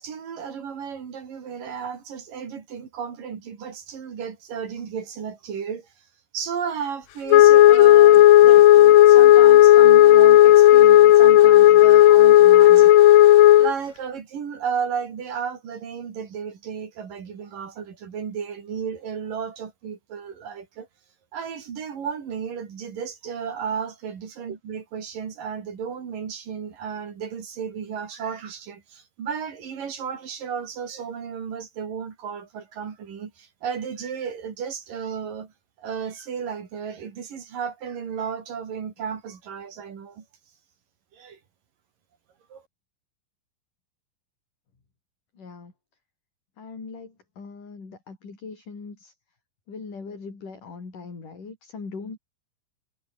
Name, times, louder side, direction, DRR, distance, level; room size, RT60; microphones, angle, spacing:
voice 1, 0.0-6.0 6.3-12.9 13.6-20.9 21.3-35.5 35.8-40.2 41.1-41.4 42.5-42.6, right 7 dB, 55° right, 4.4 m, -33 dB
Wind instrument woodwind instrument, 7.3-13.7, left 14 dB, 65° left, 2.4 m, -11 dB
voice 2, 45.3-45.7 46.6-49.2 49.7-52.2, left 4 dB, 50° left, 7.7 m, -40 dB
omnidirectional pair, 4.9 m